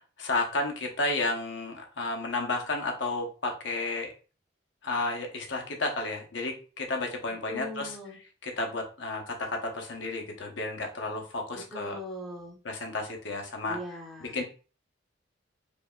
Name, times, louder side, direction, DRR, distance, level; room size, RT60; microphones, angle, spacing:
voice 1, 0.2-4.1 4.8-7.9 8.4-12.0 12.6-13.8 14.2-14.4, left 2 dB, 60° left, 3 dB, 0.9 m, -32 dB
voice 2, 7.3-8.2 11.5-12.6 13.7-14.4, equal, ahead, -1 dB, 0.9 m, -40 dB
5.2 x 2.7 x 2.3 m, 0.36 s
head